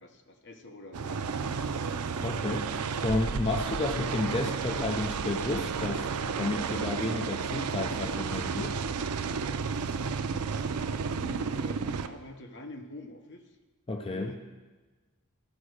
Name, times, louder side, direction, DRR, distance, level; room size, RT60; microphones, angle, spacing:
voice 1, 0.0-1.9 11.1-13.6 14.1-14.4, left 1 dB, 55° left, 5 dB, 1.0 m, -46 dB
sound 1, 0.9-12.1, right 5 dB, 90° right, 0.5 m, -32 dB
voice 2, 2.2-8.8 13.9-14.4, left 2 dB, 25° left, 3 dB, 0.6 m, -32 dB
14.0 x 5.2 x 6.4 m, 1.3 s
head